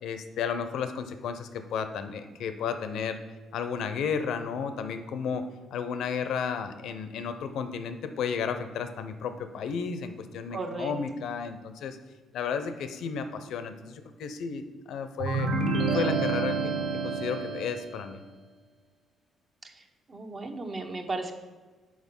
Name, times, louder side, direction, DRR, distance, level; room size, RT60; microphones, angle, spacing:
voice 1, 0.0-3.2 3.5-5.4 5.7-12.0 12.3-15.5 15.9-16.7 17.0-18.2, left 6 dB, 80° left, 9 dB, 0.6 m, -33 dB
voice 2, 10.5-10.9 19.6-19.7 20.1-21.3, right 3 dB, 35° right, 5 dB, 0.9 m, -35 dB
sound 1, 15.2-18.0, right 3 dB, 75° right, 0.9 m, -28 dB
6.3 x 4.7 x 5.3 m, 1.4 s
cardioid pair, 90°, 0 cm